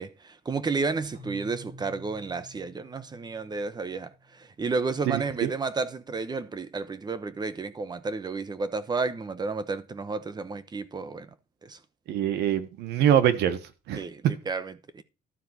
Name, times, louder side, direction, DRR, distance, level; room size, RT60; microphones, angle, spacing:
voice 1, 0.0-11.3 11.6-11.8 14.0-15.0, right 4 dB, 25° right, 1.1 m, -32 dB
Keyboard (musical), 1.1-4.8, equal, 50° right, 4.5 m, -49 dB
voice 2, 5.1-5.5 12.1-13.6 13.9-14.3, right 10 dB, 80° right, 1.5 m, -24 dB
12.5 x 4.4 x 8.0 m
cardioid pair, 110°, 17 cm